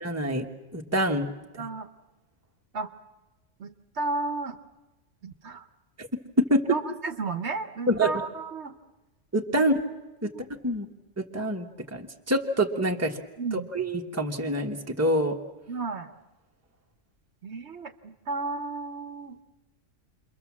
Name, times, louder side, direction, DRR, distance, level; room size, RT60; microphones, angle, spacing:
voice 1, 0.0-0.4 0.7-1.3 6.0-6.1 6.4-6.6 7.9-8.1 9.3-9.7 10.2-10.3 10.6-10.9 11.3-13.2 13.7-15.3, equal, 10° right, 2 dB, 1.4 m, -25 dB
voice 2, 1.6-1.9 2.7-2.9 3.6-4.6 5.2-5.6 6.7-8.8 9.5-9.6 10.2-10.4 13.4-13.7 15.7-16.1 17.4-19.4, right 3 dB, 65° right, 8 dB, 1.3 m, -33 dB
29.0 x 23.0 x 7.4 m, 1.1 s
omnidirectional pair, 1.3 m